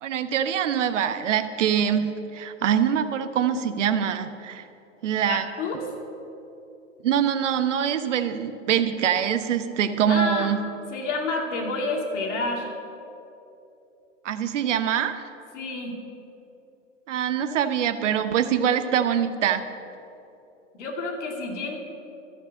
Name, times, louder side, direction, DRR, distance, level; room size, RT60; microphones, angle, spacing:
voice 1, 0.0-4.6 5.0-5.4 7.0-10.6 14.2-15.2 17.1-19.6, right 9 dB, 65° right, 10 dB, 1.0 m, -24 dB
voice 2, 5.3-5.8 10.1-10.5 10.9-12.7 15.5-16.0 20.8-21.8, left 3 dB, 65° left, 0 dB, 2.7 m, -29 dB
13.0 x 6.6 x 8.4 m, 2.9 s
hypercardioid pair, 125°, 39 cm